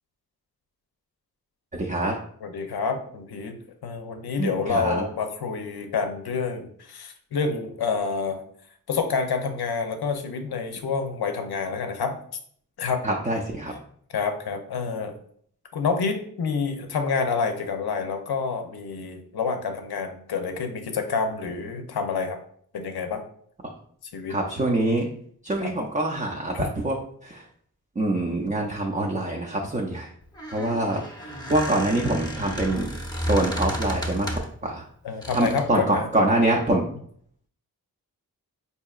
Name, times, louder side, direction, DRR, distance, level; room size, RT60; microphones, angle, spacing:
voice 1, 1.7-2.2 4.4-5.0 13.0-13.7 24.3-25.1 25.4-27.0 27.2-27.4 28.0-30.1 30.5-32.9 33.2-34.3 34.6-34.8 35.3-36.8, right 2 dB, 20° right, 0 dB, 0.4 m, -25 dB
voice 2, 2.4-3.6 3.8-8.4 8.9-12.2 12.8-13.0 14.1-15.1 15.7-22.4 22.7-23.2 24.1-24.4 25.6-25.7 26.5-26.7 35.0-36.1, left 5 dB, 90° left, 6 dB, 0.6 m, -28 dB
Squeak, 30.2-34.6 35.2-35.7, equal, 10° left, 0.7 m, -32 dB
4.5 x 2.8 x 2.3 m, 0.62 s
wide cardioid pair, 80°, 37 cm